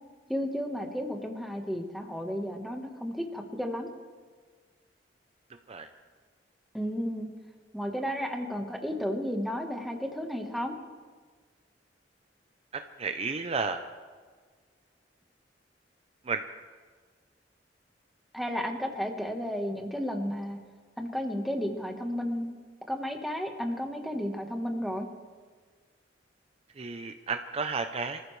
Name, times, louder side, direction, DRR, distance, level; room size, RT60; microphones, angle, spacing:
voice 1, 0.3-3.9 6.7-7.3 7.7-10.8 18.3-20.6 21.0-22.6 22.9-25.1, equal, ahead, 3 dB, 1.3 m, -33 dB
voice 2, 12.7-13.8 16.3-16.4 26.8-28.2, right 4 dB, 35° right, 7 dB, 0.6 m, -32 dB
25.5 x 14.5 x 3.2 m, 1.6 s
head